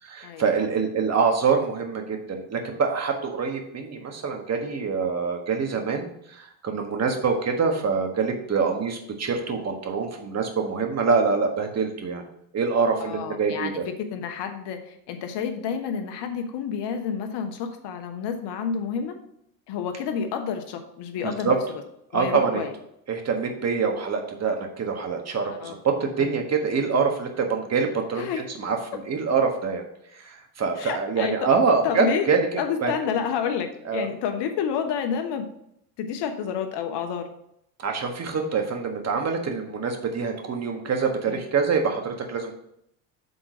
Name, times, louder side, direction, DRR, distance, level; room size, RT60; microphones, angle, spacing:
voice 1, 0.0-12.2 12.5-13.8 21.2-21.5 22.1-22.6 23.1-29.8 30.1-32.5 32.8-32.9 33.8-34.1 37.8-42.5, right 5 dB, 35° right, 3 dB, 1.6 m, -25 dB
voice 2, 13.0-13.7 14.1-19.2 19.7-21.6 22.1-22.7 25.5-25.7 28.1-28.4 30.8-31.3 31.8-32.3 32.6-35.5 36.0-37.3 41.3-41.4, left 7 dB, 60° left, 6 dB, 1.2 m, -29 dB
6.7 x 3.7 x 6.1 m, 0.75 s
hypercardioid pair, 80°, 46 cm